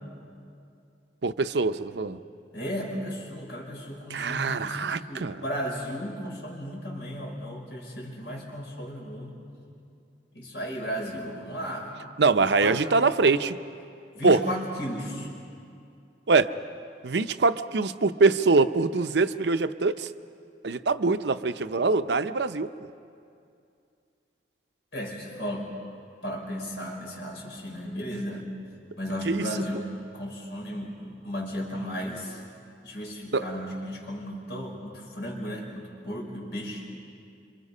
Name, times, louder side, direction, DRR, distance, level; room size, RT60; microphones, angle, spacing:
voice 1, 1.2-2.2 4.1-5.4 12.2-13.6 14.2-14.4 16.3-16.5 17.0-20.1 20.6-22.7 29.2-29.4 33.3-33.4, right 3 dB, 70° right, 11 dB, 0.7 m, -23 dB
voice 2, 2.5-9.4 10.3-12.0 12.4-12.9 14.1-15.3 24.9-25.7 26.2-28.5 29.0-32.4 32.8-36.8, equal, 85° left, -1 dB, 5.4 m, -35 dB
27.0 x 26.0 x 5.5 m, 2.4 s
head